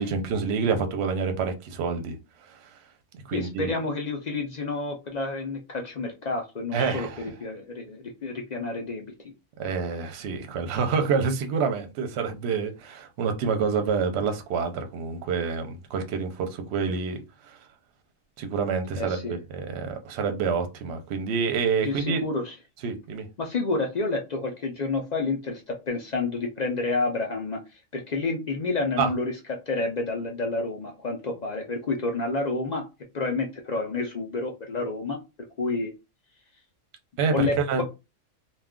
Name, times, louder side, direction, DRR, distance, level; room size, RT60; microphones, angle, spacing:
voice 1, 0.0-2.2 2.5-2.7 3.3-3.7 6.7-7.2 9.6-17.6 18.4-22.2 22.8-23.3 29.0-29.1 37.2-37.8, right 5 dB, 65° right, 0.8 m, -27 dB
voice 2, 3.3-9.3 19.0-19.4 21.8-22.5 23.4-27.6 27.9-32.8 33.1-35.2 35.6-35.9 37.3-37.8, left 3 dB, 60° left, 0.4 m, -29 dB
2.3 x 2.3 x 3.6 m
omnidirectional pair, 1.4 m